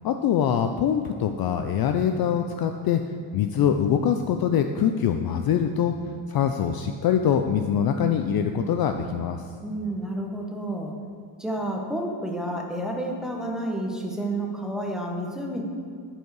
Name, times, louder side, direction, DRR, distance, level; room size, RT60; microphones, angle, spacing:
voice 1, 0.0-3.0 3.3-5.9 6.3-9.4, left 8 dB, 50° left, 6 dB, 0.4 m, -23 dB
voice 2, 9.6-10.9 11.4-15.6, right 1 dB, ahead, -1 dB, 1.0 m, -30 dB
11.0 x 4.6 x 4.8 m, 2.1 s
cardioid pair, 110°, 50 cm